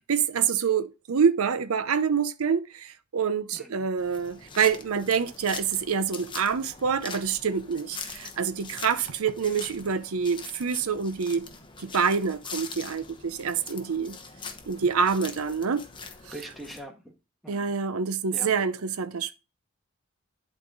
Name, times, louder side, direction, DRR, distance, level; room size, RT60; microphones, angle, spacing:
voice 1, 0.0-11.4 11.8-14.2 14.7-15.8 17.5-19.4, right 6 dB, 80° right, 0.6 m, -26 dB
voice 2, 3.5-3.9 16.3-17.1 17.4-17.7 18.3-18.5, equal, ahead, 1.4 m, -42 dB
sound 1, 4.0-16.8, left 5 dB, 25° left, 0.9 m, -43 dB
11.0 x 4.2 x 3.8 m
head